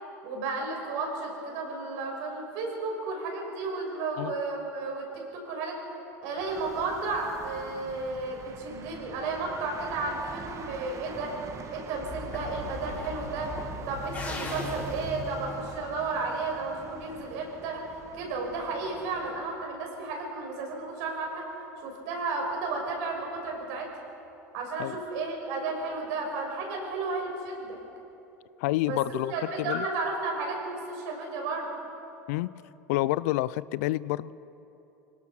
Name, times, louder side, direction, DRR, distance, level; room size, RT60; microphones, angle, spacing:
voice 1, 0.2-5.8 6.2-11.4 11.7-13.5 13.9-17.9 18.1-21.5 21.8-23.9 24.5-27.8 28.9-31.7, right 3 dB, 65° right, 1 dB, 6.2 m, -33 dB
sound 1, 6.3-19.6, right 5 dB, 35° right, 1.7 m, -44 dB
sound 2, 12.0-16.2, left 3 dB, 20° left, 5.6 m, -39 dB
voice 2, 28.6-29.3 29.6-29.8 32.3-32.5 32.9-34.3, left 17 dB, 65° left, 20 dB, 0.5 m, -28 dB
25.5 x 18.0 x 6.1 m, 2.9 s
hypercardioid pair, 80°, 9 cm